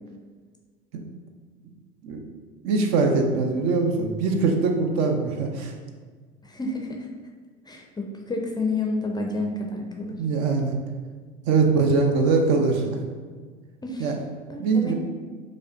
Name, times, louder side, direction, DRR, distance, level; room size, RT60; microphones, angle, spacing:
voice 1, 2.6-5.7 10.2-10.7 11.5-13.0 14.0-14.1 14.6-14.9, right 4 dB, 60° right, 3 dB, 0.6 m, -22 dB
voice 2, 6.4-7.1 7.7-10.2 13.8-14.1 14.5-14.9, left 2 dB, 15° left, 1 dB, 0.4 m, -30 dB
4.9 x 2.2 x 2.6 m, 1.5 s
hypercardioid pair, 80°, 30 cm